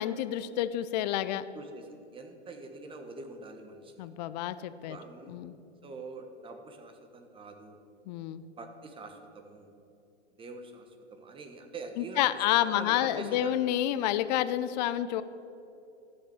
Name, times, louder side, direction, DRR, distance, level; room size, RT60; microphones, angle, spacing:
voice 1, 0.0-1.4 4.0-5.0 5.3-5.6 8.1-8.4 12.0-15.2, left 12 dB, 40° left, 14 dB, 0.5 m, -29 dB
voice 2, 1.5-4.1 4.9-5.4 5.8-7.8 8.6-9.7 10.4-13.6, right 3 dB, 15° right, 5 dB, 1.2 m, -44 dB
14.0 x 6.5 x 7.0 m, 2.8 s
hypercardioid pair, 115°, 35 cm